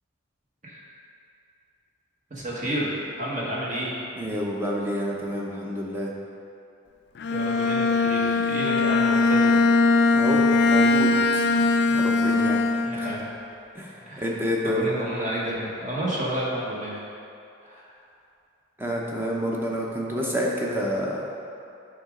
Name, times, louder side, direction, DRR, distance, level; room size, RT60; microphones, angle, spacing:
voice 1, 2.3-2.9 3.2-3.9 7.3-9.5 12.8-13.3 14.1-14.4 14.6-17.0 17.6-17.8, right 1 dB, 40° right, -5 dB, 1.4 m, -30 dB
voice 2, 4.2-6.1 10.1-12.6 13.7-14.9 18.8-21.2, equal, 10° right, -3 dB, 0.8 m, -29 dB
Bowed string instrument, 7.2-13.3, left 3 dB, 55° left, 0.3 m, -21 dB
8.5 x 5.1 x 3.7 m, 2.6 s
head